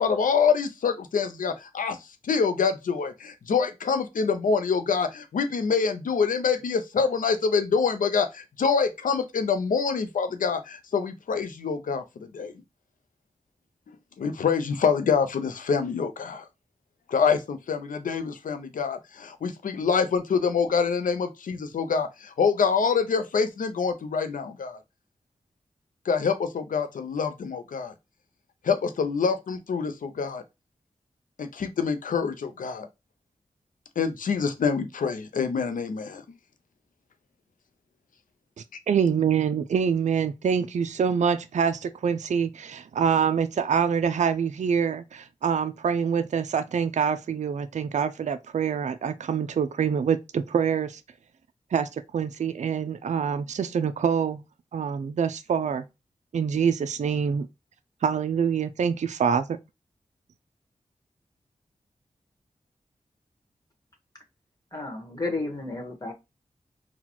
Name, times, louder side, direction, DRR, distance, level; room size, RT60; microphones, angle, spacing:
voice 1, 0.0-12.5 13.9-16.5 17.1-24.8 26.0-27.9 28.6-30.4 31.4-32.9 34.0-36.2, left 5 dB, 85° left, 0.6 m, -26 dB
voice 2, 38.9-51.0 51.7-54.4 54.7-55.8 56.3-57.5 58.0-59.6, right 7 dB, 60° right, 0.4 m, -25 dB
voice 3, 64.7-66.1, left 2 dB, 30° left, 1.3 m, -32 dB
4.0 x 2.3 x 2.9 m
cardioid pair, 40°, 14 cm